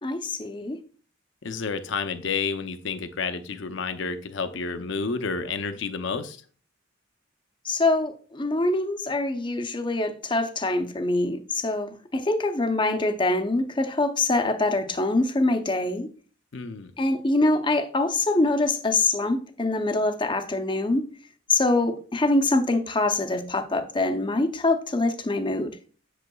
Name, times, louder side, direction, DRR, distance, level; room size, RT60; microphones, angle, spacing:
voice 1, 0.0-0.8 7.6-16.1 17.0-21.1 21.5-25.7, left 2 dB, 25° left, 0.6 m, -24 dB
voice 2, 1.4-6.4 16.5-16.9, left 5 dB, 65° left, 0.6 m, -30 dB
8.0 x 6.9 x 2.3 m
head